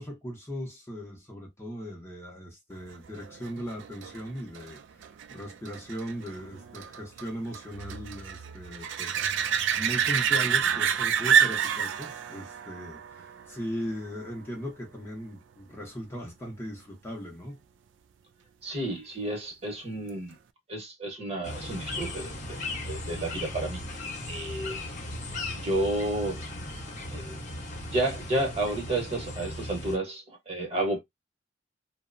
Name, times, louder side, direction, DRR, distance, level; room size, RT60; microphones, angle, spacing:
voice 1, 0.0-17.6, equal, 15° left, 0.6 m, -38 dB
sound 1, 3.2-14.5 20.1-20.2, right 8 dB, 80° right, 0.3 m, -29 dB
voice 2, 18.6-20.4 20.7-23.8 24.3-24.8 25.5-26.5 27.1-27.4 27.9-31.0, right 1 dB, 35° right, 1.0 m, -31 dB
sound 2, 21.4-30.0, left 1 dB, 40° left, 0.8 m, -37 dB
2.8 x 2.0 x 2.4 m
head